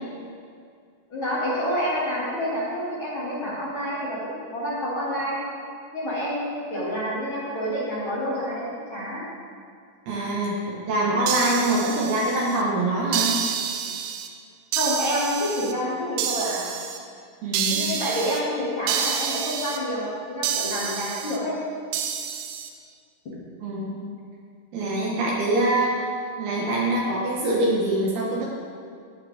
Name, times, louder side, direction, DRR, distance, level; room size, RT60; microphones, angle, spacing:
voice 1, 1.1-5.4 5.9-9.2 14.7-16.6 17.7-21.5, equal, 40° left, -10 dB, 1.9 m, -28 dB
voice 2, 10.1-10.5 10.9-13.3 17.4-17.9 23.6-24.0 24.7-26.1 26.4-28.5, right 1 dB, 70° right, -4 dB, 2.5 m, -24 dB
sound 1, 11.3-12.6 13.1-14.3 14.7-15.7 16.2-17.0 17.5-18.4 18.9-19.8 20.4-21.4 21.9-22.7, right 8 dB, 90° right, 3.5 m, -28 dB
19.5 x 6.6 x 3.6 m, 2.2 s
omnidirectional pair, 6.0 m